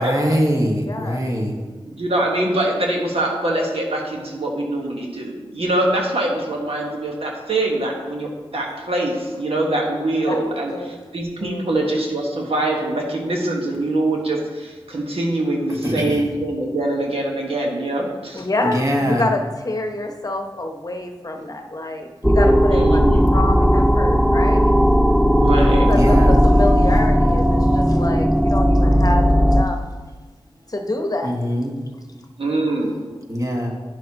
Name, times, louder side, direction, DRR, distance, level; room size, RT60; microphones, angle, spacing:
voice 1, 0.0-1.6 15.8-16.2 18.7-19.2 25.8-26.3 31.2-31.7 33.3-33.7, equal, 35° right, 0 dB, 1.6 m, -22 dB
voice 2, 0.9-1.3 10.3-10.4 10.7-10.9 11.4-11.6 18.3-23.0 23.3-24.7 25.9-29.8 30.7-31.4, left 2 dB, 40° left, 4 dB, 0.9 m, -27 dB
voice 3, 1.8-18.4 22.7-23.2 25.4-25.9 32.4-32.9, right 1 dB, 75° right, -1 dB, 1.3 m, -23 dB
sound 1, 22.2-29.6, equal, ahead, 0.4 m, -15 dB
10.0 x 6.3 x 2.9 m, 1.3 s
cardioid pair, 40°, 10 cm